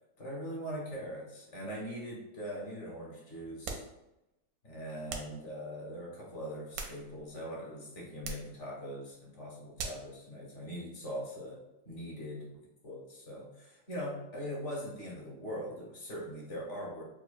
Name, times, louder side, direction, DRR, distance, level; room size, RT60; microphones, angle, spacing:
voice 1, 0.2-3.8 4.6-12.5 12.8-17.0, equal, 45° left, -3 dB, 1.2 m, -41 dB
sound 1, 3.6-4.0 5.1-5.4 6.5-7.4 8.2-8.5 9.8-10.1, right 4 dB, 70° right, 0.9 m, -41 dB
4.8 x 2.2 x 2.4 m, 0.91 s
omnidirectional pair, 1.9 m